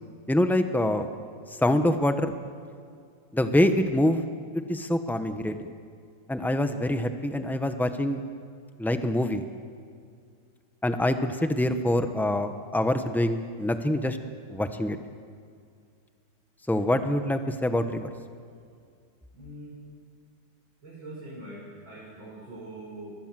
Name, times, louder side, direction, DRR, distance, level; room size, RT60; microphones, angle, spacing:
voice 1, 0.3-1.1 1.6-2.3 3.3-4.2 4.5-5.7 6.3-8.2 8.8-9.4 10.8-14.2 14.5-15.0 16.7-18.1, left 1 dB, ahead, 8 dB, 0.4 m, -25 dB
voice 2, 19.3-19.8 20.8-23.2, right 1 dB, 75° right, -5 dB, 6.0 m, -42 dB
23.0 x 22.0 x 7.6 m, 2.2 s
omnidirectional pair, 2.1 m